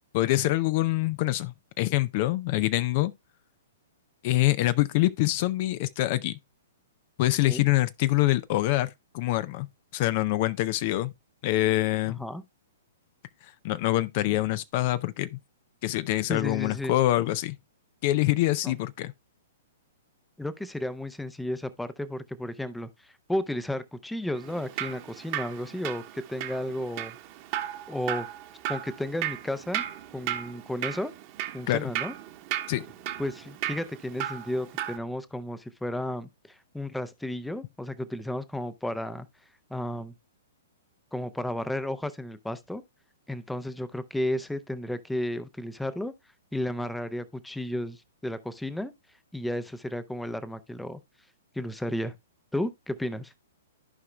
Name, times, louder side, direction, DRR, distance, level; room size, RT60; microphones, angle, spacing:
voice 1, 0.1-3.1 4.2-6.4 7.2-8.9 9.1-9.7 9.9-11.1 11.4-12.2 13.4-15.4 15.8-17.6 18.0-19.1 31.7-31.9 32.7-32.8, left 16 dB, 45° left, 0.4 m, -25 dB
voice 2, 12.1-12.4 16.3-16.9 18.6-18.7 20.4-27.2 27.9-28.3 28.7-29.8 30.1-31.1 31.5-32.1 33.2-39.3 39.7-40.1 41.1-42.8 43.3-46.1 46.5-48.9 49.3-51.0 51.5-52.1 52.5-53.3, left 1 dB, 5° left, 0.6 m, -33 dB
Drip, 24.4-35.0, right 12 dB, 40° right, 1.2 m, -35 dB
14.5 x 4.8 x 2.2 m
hypercardioid pair, 120°, 0 cm